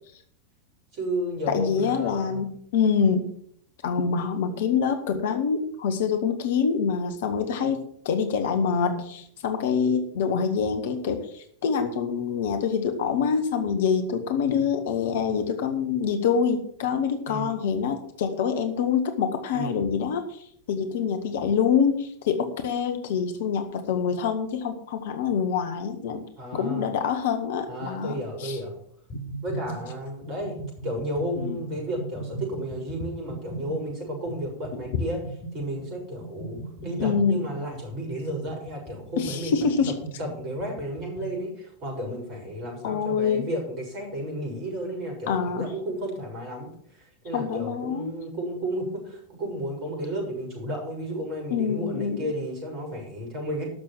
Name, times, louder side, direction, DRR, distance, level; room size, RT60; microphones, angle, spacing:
voice 1, 0.9-2.4 17.3-17.5 19.5-19.8 26.4-26.9 27.7-28.8 29.4-30.6 30.8-35.2 35.5-46.7 47.2-53.7, equal, 35° right, 0 dB, 6.7 m, -33 dB
voice 2, 1.5-3.3 3.8-26.2 26.5-28.6 31.4-31.6 34.7-35.0 37.0-37.5 39.2-39.9 42.8-43.5 45.3-45.7 47.3-48.2 51.5-52.3, left 6 dB, 55° left, 7 dB, 1.5 m, -26 dB
sound 1, 29.1-41.4, right 3 dB, 30° left, 5.6 m, -39 dB
12.0 x 6.9 x 7.3 m, 0.66 s
figure-of-eight pair, 90°, 0 cm